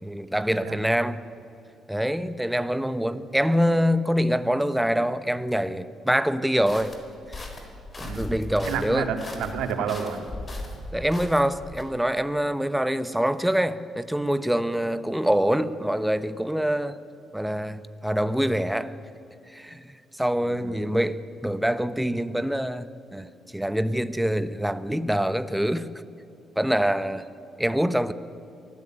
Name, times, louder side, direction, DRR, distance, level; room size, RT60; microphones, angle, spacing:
voice 1, 0.0-1.2 1.9-6.9 8.0-9.1 10.9-17.0 17.3-18.9 19.5-25.9 26.6-27.3 27.6-28.1, equal, 5° right, 13 dB, 1.0 m, -25 dB
Footsteps Snow A, 6.7-11.8, left 2 dB, 30° left, 4.0 m, -38 dB
voice 2, 8.6-10.2 20.4-20.9, right 7 dB, 90° right, 5 dB, 2.6 m, -30 dB
23.5 x 16.0 x 9.2 m, 2.7 s
cardioid pair, 90°, 0 cm